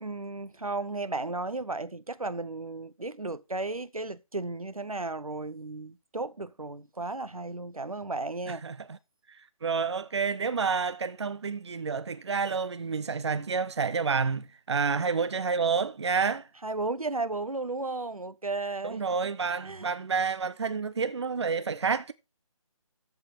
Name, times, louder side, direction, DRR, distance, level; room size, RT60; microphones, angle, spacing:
voice 1, 0.0-8.6 16.6-19.0 19.6-19.9, right 3 dB, 85° right, 0.8 m, -34 dB
voice 2, 8.5-9.0 9.6-16.5 18.8-22.1, right 5 dB, 50° right, 0.6 m, -29 dB
14.0 x 4.7 x 4.8 m
figure-of-eight pair, 150°, 18 cm